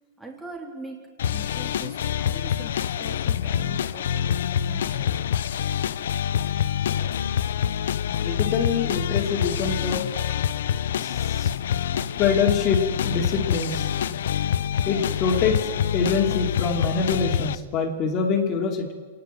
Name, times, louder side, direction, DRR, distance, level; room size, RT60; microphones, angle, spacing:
voice 1, 0.2-4.1 4.5-5.4 14.1-14.2, right 2 dB, 10° right, 0 dB, 3.7 m, -42 dB
sound 1, 1.2-17.6, left 9 dB, 75° left, 0.7 m, -26 dB
voice 2, 8.2-10.1 11.0-11.5 12.2-13.9 14.9-18.9, left 5 dB, 35° left, 2 dB, 2.9 m, -25 dB
27.5 x 10.5 x 9.3 m, 1.5 s
hypercardioid pair, 145°, 0 cm